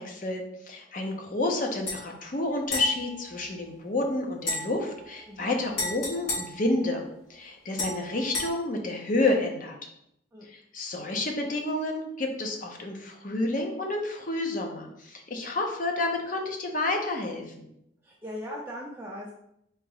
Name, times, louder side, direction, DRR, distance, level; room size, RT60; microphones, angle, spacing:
voice 1, 0.0-9.9 10.4-17.7, left 2 dB, 45° left, 2 dB, 0.6 m, -30 dB
sound 1, 1.8-2.0 2.7-3.9 4.4-7.3 7.8-8.5, left 2 dB, 90° left, 1.6 m, -35 dB
voice 2, 18.0-19.3, equal, 10° right, -4 dB, 0.4 m, -39 dB
4.0 x 2.9 x 3.9 m, 0.77 s
head